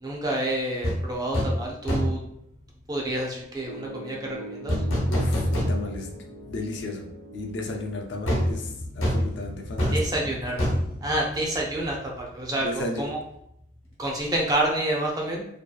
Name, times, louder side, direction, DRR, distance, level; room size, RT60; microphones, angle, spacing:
voice 1, 0.0-2.2 2.9-4.7 9.9-10.6 11.0-13.2 14.0-15.5, right 1 dB, 20° right, -1 dB, 0.4 m, -28 dB
sound 1, 0.8-1.0 1.3-1.6 1.9-2.3 4.7-6.1 6.5-6.6 8.3-11.9 12.2-12.3, equal, 90° left, 0.9 m, -26 dB
Piano, 3.6-8.6, right 2 dB, 85° right, 0.7 m, -43 dB
voice 2, 5.1-6.2 6.5-7.1 7.3-8.7 9.0-10.0 12.6-13.0, left 2 dB, 60° left, 2 dB, 0.4 m, -33 dB
2.7 x 2.3 x 2.3 m, 0.75 s
head